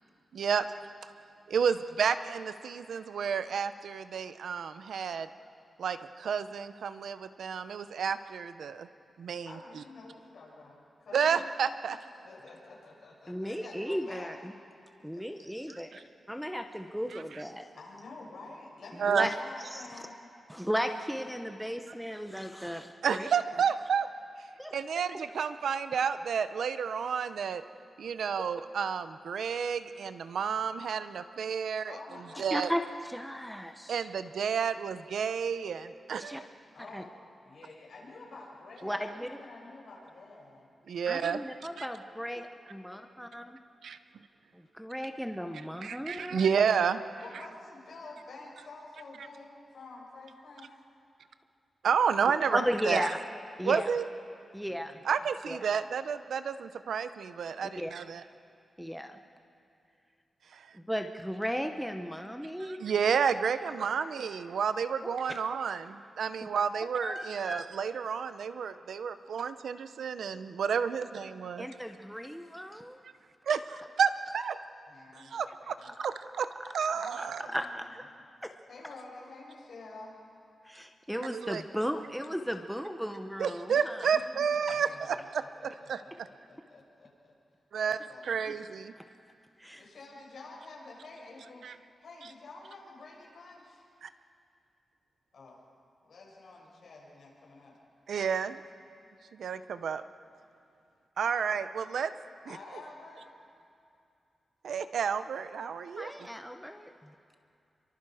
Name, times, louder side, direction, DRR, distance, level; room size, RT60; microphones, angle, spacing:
voice 1, 0.3-0.7 1.5-5.3 5.8-8.9 9.2-9.5 11.1-12.0 15.9-16.0 17.1-17.4 19.0-19.3 23.0-24.1 24.7-27.6 28.0-32.0 32.4-32.7 33.9-36.4 40.9-41.4 41.8-41.9 43.8-44.0 45.8-47.0 51.8-53.1 53.6-54.1 55.0-58.2 60.5-60.8 62.6-71.7 73.5-74.6 75.1-76.5 76.7-77.4 81.3-81.6 83.4-86.0 87.7-88.0 88.2-88.9 91.6-91.7 94.0-94.1 98.1-98.6 99.3-100.0 101.2-102.1 102.5-102.6 104.6-106.3, right 7 dB, 85° right, 11 dB, 0.8 m, -31 dB
voice 2, 9.5-11.5 12.2-14.3 15.1-15.3 17.7-20.1 31.9-32.4 36.7-37.1 37.4-40.7 47.2-50.7 54.6-54.8 74.9-75.4 75.8-75.9 76.9-78.0 78.7-80.1 84.0-87.3 87.8-88.4 89.8-91.6 92.0-93.8 95.3-95.6 96.0-97.8 102.4-103.3, left 3 dB, 65° left, -3 dB, 7.2 m, -49 dB
voice 3, 13.3-14.5 15.0-16.0 16.3-17.7 19.1-19.8 20.5-23.3 24.6-24.7 32.5-34.1 36.2-36.4 36.9-37.0 38.8-39.4 41.1-43.6 44.5-46.4 52.5-53.1 53.6-53.9 54.5-55.0 55.5-55.6 57.6-57.9 58.8-59.2 60.7-62.8 65.3-65.5 67.0-67.7 71.6-73.0 77.2-77.3 77.5-78.0 78.4-78.5 80.6-84.1 84.7-84.8 89.6-89.9 106.0-107.1, equal, ahead, 6 dB, 0.9 m, -35 dB
29.0 x 24.0 x 5.0 m, 2.5 s
wide cardioid pair, 125°, 0 cm